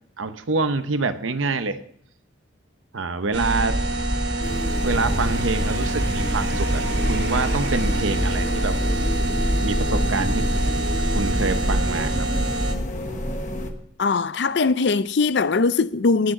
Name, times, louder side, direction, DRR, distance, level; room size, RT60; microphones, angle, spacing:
voice 1, 0.2-1.8 2.9-3.8 4.8-8.8 9.2-10.5 11.1-12.3, right 3 dB, 85° right, 0.9 m, -26 dB
sound 1, 3.3-12.7, right 1 dB, 55° right, 1.6 m, -24 dB
sound 2, 4.4-13.7, left 1 dB, 40° left, 1.3 m, -29 dB
voice 2, 14.0-16.3, left 4 dB, 60° left, 0.5 m, -21 dB
18.5 x 6.4 x 5.9 m
head